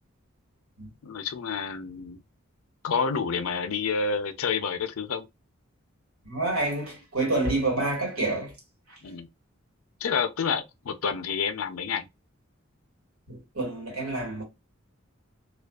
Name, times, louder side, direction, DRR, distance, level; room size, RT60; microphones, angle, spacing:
voice 1, 1.0-2.2 2.8-5.2 9.0-9.3 10.0-12.1, left 5 dB, 80° left, 0.5 m, -29 dB
voice 2, 6.2-8.5 8.9-9.0 13.3-14.4, right 2 dB, 85° right, 1.5 m, -28 dB
2.5 x 2.2 x 2.3 m
head